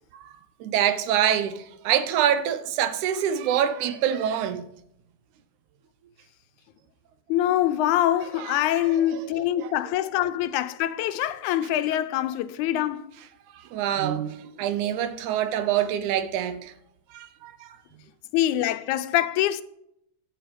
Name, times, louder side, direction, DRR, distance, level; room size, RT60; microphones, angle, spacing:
voice 1, 0.6-4.7 8.3-9.2 9.6-9.7 13.5-16.7 17.1-17.8, right 10 dB, 85° right, 2.4 m, -26 dB
voice 2, 7.3-13.1 18.3-19.6, left 12 dB, 90° left, 2.1 m, -24 dB
12.0 x 8.9 x 5.3 m
omnidirectional pair, 3.4 m